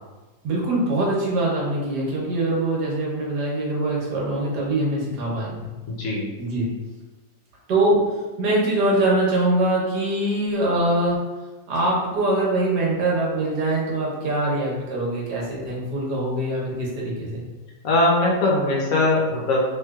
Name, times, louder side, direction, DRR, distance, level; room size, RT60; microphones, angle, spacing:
voice 1, 0.4-5.6 6.4-6.7 7.7-8.0 8.4-11.2 11.7-17.4, right 1 dB, 80° right, -4 dB, 1.4 m, -23 dB
voice 2, 5.9-6.3 17.8-19.6, left 2 dB, 65° left, -3 dB, 1.0 m, -20 dB
3.0 x 3.0 x 2.3 m, 1.2 s
omnidirectional pair, 1.8 m